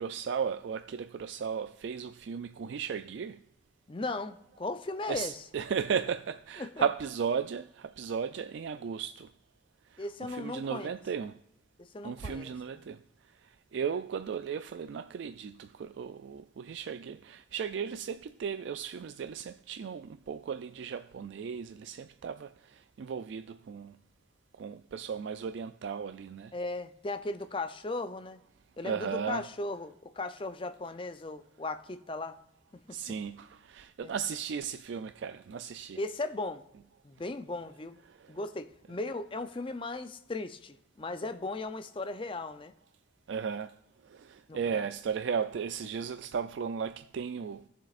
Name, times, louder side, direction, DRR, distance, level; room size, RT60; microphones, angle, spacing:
voice 1, 0.0-3.4 5.1-9.3 10.3-11.3 12.0-13.0 13.7-22.5 23.0-23.9 24.6-26.5 28.8-29.4 32.9-36.0 43.3-43.7 44.1-47.6, right 6 dB, 65° right, 0.3 m, -35 dB
voice 2, 3.9-5.5 6.6-6.8 10.0-10.9 11.8-12.9 26.5-28.4 28.8-32.4 32.9-33.1 34.0-34.2 36.0-36.6 37.0-38.0 38.3-42.7 44.5-44.9, left 2 dB, 25° left, 0.5 m, -37 dB
17.0 x 7.2 x 2.5 m
head